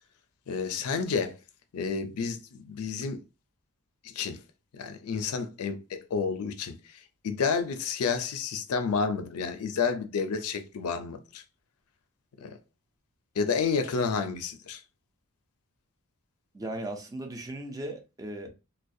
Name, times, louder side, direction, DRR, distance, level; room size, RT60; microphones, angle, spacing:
voice 1, 0.5-1.3 1.7-3.2 4.1-4.4 4.7-6.7 7.2-11.4 12.4-12.6 13.4-14.8, left 5 dB, 75° left, 0.4 m, -30 dB
voice 2, 16.5-18.5, right 1 dB, 15° right, 0.4 m, -37 dB
2.3 x 2.1 x 2.6 m
head